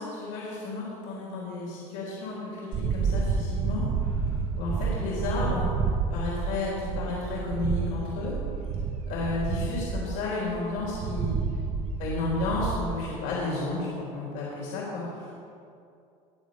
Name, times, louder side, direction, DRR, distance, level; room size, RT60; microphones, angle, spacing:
voice 1, 0.0-5.7 6.1-8.3 9.1-11.4 12.0-15.3, left 3 dB, 80° left, -5 dB, 4.0 m, -32 dB
sound 1, 2.7-12.9, right 5 dB, 40° right, 1.1 m, -30 dB
21.0 x 7.7 x 5.2 m, 2.5 s
supercardioid pair, 120°, 15 cm